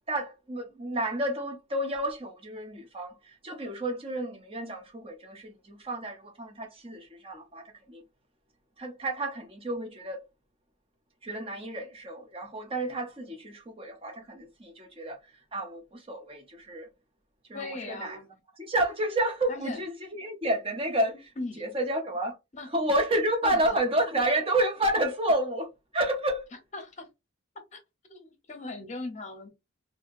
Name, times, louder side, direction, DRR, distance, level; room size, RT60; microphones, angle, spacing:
voice 1, 0.1-8.0 8.8-10.2 11.2-15.2 15.5-16.9 17.5-18.2 18.6-21.3 21.6-22.3 22.7-25.7 25.9-26.4, right 1 dB, 25° right, 0.7 m, -30 dB
voice 2, 17.5-18.3 19.5-19.8 21.4-21.6 22.5-22.7 23.4-23.8 26.7-27.1 27.7-27.8 28.1-29.5, left 2 dB, 35° left, 0.8 m, -39 dB
2.8 x 2.7 x 2.5 m
head